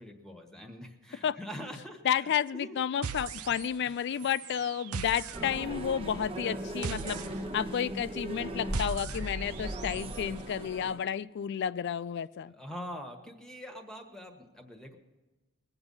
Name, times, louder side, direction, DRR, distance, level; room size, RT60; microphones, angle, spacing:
voice 1, 0.0-2.8 12.5-15.0, equal, 5° left, 3 dB, 1.4 m, -44 dB
voice 2, 2.0-7.2 7.5-12.5, left 8 dB, 55° left, 17 dB, 0.3 m, -31 dB
sound 1, 3.0-3.9 4.2-10.2, right 6 dB, 80° right, 0.6 m, -41 dB
sound 2, 5.3-11.0, right 1 dB, 25° right, 1.0 m, -38 dB
21.0 x 8.0 x 5.5 m, 1.2 s
head